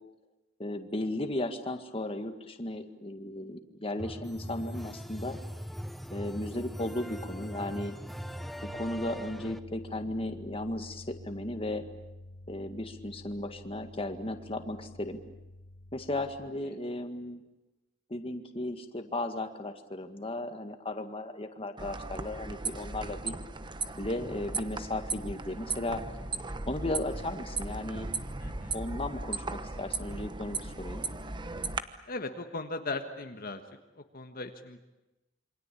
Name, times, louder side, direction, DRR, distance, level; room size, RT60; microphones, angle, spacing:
voice 1, 0.6-5.4 6.1-8.0 8.7-11.9 12.5-15.2 15.9-17.4 18.1-23.3 24.0-26.0 26.7-28.1 28.7-31.1, left 1 dB, 30° left, 6 dB, 1.9 m, -35 dB
sound 1, 4.0-9.6, equal, ahead, 1.0 m, -40 dB
voice 2, 8.4-8.8 28.4-28.8 32.1-33.6 34.0-34.8, left 3 dB, 50° left, 5 dB, 1.6 m, -38 dB
sound 2, 8.7-16.5, left 1 dB, 80° left, 2.6 m, -49 dB
sound 3, 21.8-31.8, right 3 dB, 25° right, 1.1 m, -37 dB
28.0 x 24.5 x 8.5 m, 1.0 s
head